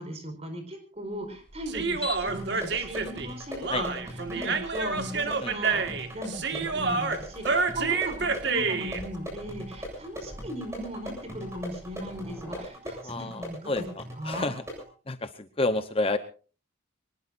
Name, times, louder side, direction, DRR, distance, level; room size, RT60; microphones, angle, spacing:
voice 1, 0.0-13.9 14.2-14.5, equal, 30° right, 6 dB, 4.7 m, -38 dB
sound 1, 1.0-12.6, left 1 dB, 5° left, 6.2 m, -47 dB
Human voice, 1.7-9.0, right 4 dB, 55° right, 1.8 m, -28 dB
sound 2, 2.3-14.9, equal, 15° right, 7.6 m, -40 dB
voice 2, 13.0-14.6 15.1-16.2, left 2 dB, 25° left, 10 dB, 0.9 m, -30 dB
24.5 x 19.5 x 2.6 m, 0.37 s
head